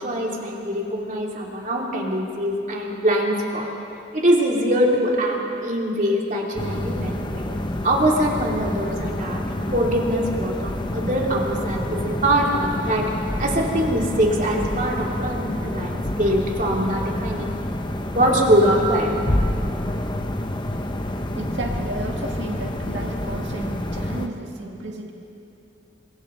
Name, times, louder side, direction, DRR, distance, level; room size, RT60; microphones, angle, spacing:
voice 1, 0.0-3.7 4.1-7.4 7.8-13.0 13.4-17.6 18.1-19.1, right 1 dB, 40° right, -2 dB, 3.0 m, -23 dB
sound 1, 6.6-24.3, left 1 dB, 25° left, 0.9 m, -28 dB
voice 2, 21.4-25.1, right 2 dB, 70° right, 1 dB, 1.9 m, -33 dB
28.5 x 25.5 x 3.9 m, 2.8 s
head